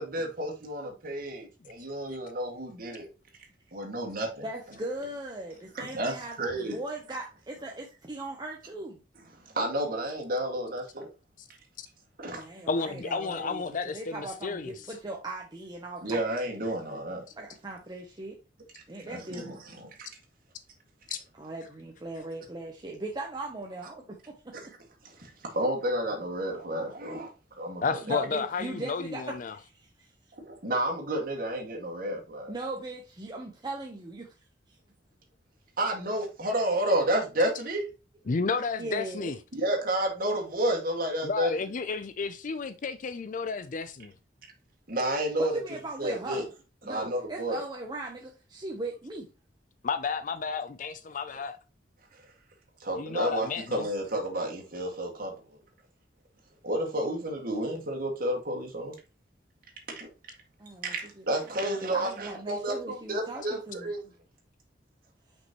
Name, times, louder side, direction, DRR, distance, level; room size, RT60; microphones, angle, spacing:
voice 1, 0.0-3.1 3.7-4.5 5.7-6.8 9.3-11.1 12.2-12.4 16.0-17.2 19.0-19.9 22.2-22.3 24.5-24.8 25.0-27.3 27.6-28.2 30.3-32.5 35.8-37.8 39.5-41.5 44.9-45.6 46.0-46.5 46.8-47.6 52.1-52.3 52.8-55.6 56.6-58.9 59.9-60.1 60.8-64.0, right 1 dB, 55° right, 2.1 m, -31 dB
voice 2, 4.4-9.0 12.3-16.2 17.3-18.4 18.9-19.6 21.4-24.5 28.1-30.1 32.5-34.3 38.8-39.3 45.5-46.5 46.8-49.3 60.6-60.9 61.5-63.9, right 2 dB, 25° right, 0.9 m, -39 dB
voice 3, 12.7-14.7 21.1-21.2 27.8-29.6 38.3-39.4 41.2-44.1 49.8-51.6 53.0-53.9, left 4 dB, 45° left, 0.5 m, -32 dB
6.0 x 5.4 x 3.0 m
head